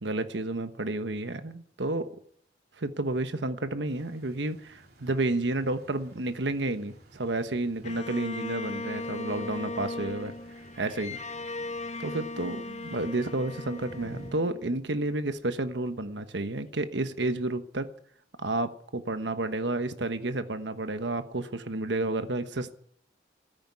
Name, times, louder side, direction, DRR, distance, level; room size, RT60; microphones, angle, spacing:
voice 1, 0.0-2.1 2.8-10.3 10.8-11.2 12.0-17.9 18.4-22.7, right 2 dB, 85° right, 10 dB, 1.2 m, -31 dB
sound 1, 3.8-14.3, right 1 dB, 60° right, 3.5 m, -54 dB
Bowed string instrument, 7.8-15.1, left 2 dB, 40° left, 1.1 m, -38 dB
13.5 x 10.5 x 9.7 m, 0.62 s
head